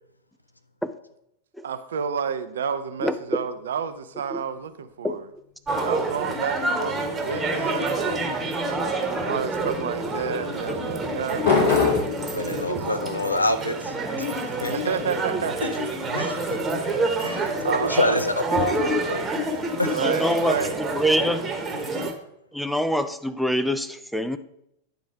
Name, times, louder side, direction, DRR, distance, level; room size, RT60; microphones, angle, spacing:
voice 1, 1.6-5.3 5.8-8.3 9.2-11.6 12.6-12.9 14.7-15.7 17.6-18.2 19.9-20.8, right 7 dB, 65° right, 11 dB, 0.5 m, -30 dB
sound 1, 3.1-5.0 8.6-9.1 10.2-16.9 18.7-21.7, left 4 dB, 65° left, 3.2 m, -31 dB
sound 2, 5.7-22.1, right 2 dB, 20° right, 1.2 m, -28 dB
voice 2, 10.7-11.1 19.9-21.5 22.5-24.4, equal, ahead, 10 dB, 0.5 m, -25 dB
voice 3, 12.3-14.7 16.1-16.4 17.2-19.2 19.8-20.0, left 1 dB, 85° left, 9 dB, 0.5 m, -27 dB
9.3 x 3.9 x 4.7 m, 0.77 s
figure-of-eight pair, 90°, 0 cm